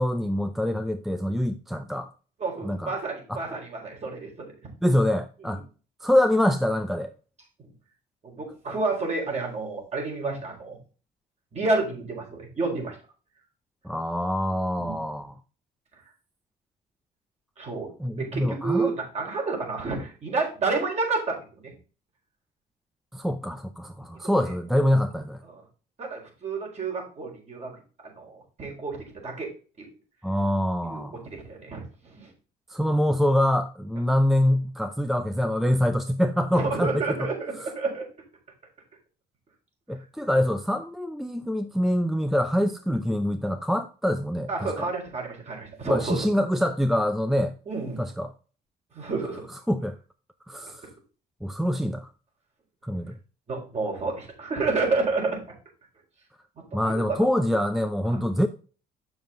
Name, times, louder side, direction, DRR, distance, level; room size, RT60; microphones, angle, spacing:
voice 1, 0.0-2.1 2.6-3.0 3.3-3.4 4.8-5.6 6.0-7.1 13.8-15.4 18.0-18.9 23.1-25.4 30.2-31.2 32.7-36.9 37.2-37.3 37.6-37.7 39.9-44.9 45.9-47.5 48.0-48.3 49.7-49.9 50.5-50.8 51.4-52.1 52.8-53.2 56.7-58.5, left 1 dB, ahead, 0.5 m, -25 dB
voice 2, 2.4-4.5 8.2-10.8 11.5-13.0 14.8-15.0 17.6-21.7 24.2-24.6 25.4-25.6 26.0-27.7 28.0-29.5 29.8-29.9 30.8-32.3 36.6-38.0 44.5-46.2 47.7-48.0 48.9-49.5 53.5-55.4 56.7-57.3 58.1-58.2, right 3 dB, 40° right, 4.5 m, -30 dB
7.7 x 7.0 x 3.8 m
cardioid pair, 110°, 17 cm